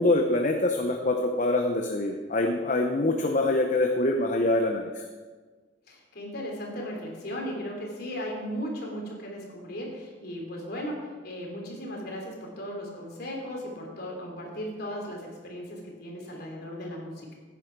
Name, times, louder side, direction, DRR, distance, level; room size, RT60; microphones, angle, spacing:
voice 1, 0.0-4.8, left 2 dB, 45° left, 3 dB, 0.9 m, -24 dB
voice 2, 5.9-17.4, equal, 60° left, -1 dB, 3.5 m, -36 dB
15.5 x 9.9 x 4.7 m, 1.4 s
head